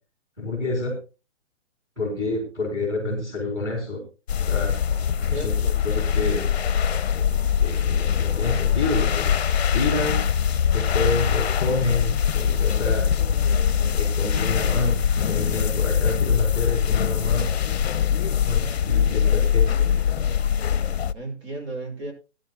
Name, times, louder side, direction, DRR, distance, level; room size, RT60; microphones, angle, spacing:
voice 1, 0.4-1.0 2.0-4.0 4.5-4.8 5.3-5.5 5.8-6.5 7.6-9.3 9.7-10.2 10.7-13.1 13.9-17.5 18.5-19.7, left 2 dB, 10° right, 0 dB, 3.8 m, -28 dB
sound 1, 4.3-21.1, left 8 dB, 60° left, 0.6 m, -22 dB
voice 2, 5.2-5.8 18.4-19.8 21.1-22.1, right 2 dB, 60° right, 3 dB, 5.9 m, -37 dB
18.5 x 11.5 x 2.3 m, 0.30 s
hypercardioid pair, 175°, 37 cm